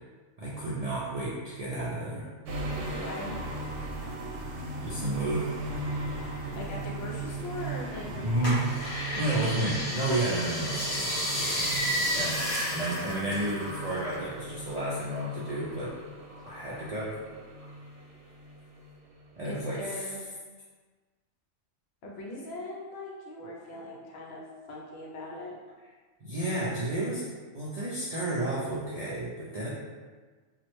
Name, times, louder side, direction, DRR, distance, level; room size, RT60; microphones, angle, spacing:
voice 1, 0.4-2.3 4.8-5.5 8.1-8.7 9.1-11.1 12.1-12.4 12.7-15.9 16.4-17.1 19.4-20.1 26.2-27.3 27.5-29.7, right 1 dB, 55° right, -8 dB, 0.4 m, -31 dB
sound 1, 2.5-19.3 19.6-19.8, right 2 dB, 75° right, 0.9 m, -38 dB
voice 2, 2.9-3.4 6.5-8.6 12.3-12.5 19.4-20.2 22.0-24.4 24.7-25.6, left 1 dB, 65° left, -3 dB, 0.8 m, -40 dB
sound 2, 8.4-14.3 14.5-15.8 16.3-17.1 17.6-17.7, equal, 45° left, 1.2 m, -32 dB
3.0 x 2.4 x 3.0 m, 1.4 s
omnidirectional pair, 1.2 m